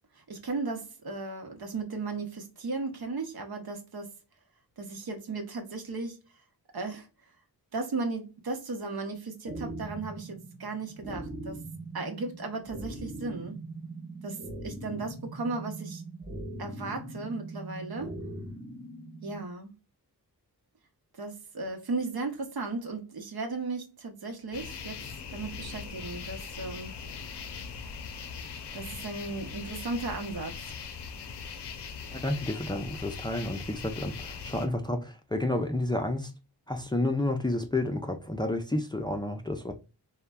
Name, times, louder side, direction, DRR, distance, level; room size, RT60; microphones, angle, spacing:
voice 1, 0.2-4.1 4.8-6.2 6.7-7.1 7.7-11.6 11.9-13.6 14.2-16.0 16.6-18.2 19.2-19.7 21.2-25.0 25.3-26.9 28.7-30.7, right 3 dB, 65° right, 0.8 m, -36 dB
sound 1, 9.5-19.4, right 2 dB, 20° right, 0.7 m, -41 dB
sound 2, 24.5-34.7, left 6 dB, 85° left, 0.6 m, -40 dB
voice 2, 32.1-36.3 36.7-39.7, left 1 dB, 10° left, 0.4 m, -30 dB
3.1 x 2.1 x 2.2 m
cardioid pair, 60°, 40 cm